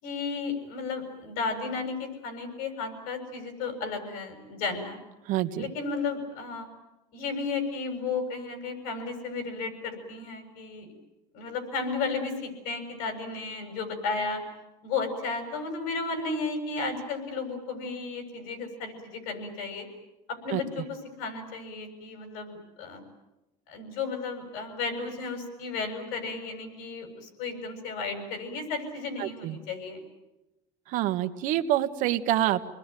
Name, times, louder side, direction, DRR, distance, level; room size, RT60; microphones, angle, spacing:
voice 1, 0.0-5.0 5.6-6.7 7.1-10.9 11.3-14.4 14.8-19.9 20.3-23.0 23.7-30.0, left 4 dB, 75° left, 6 dB, 7.2 m, -33 dB
voice 2, 5.3-5.7 20.5-20.6 29.2-29.6 30.9-32.7, right 13 dB, 65° right, 9 dB, 1.6 m, -27 dB
29.5 x 21.0 x 9.3 m, 0.98 s
cardioid pair, 145°, 15 cm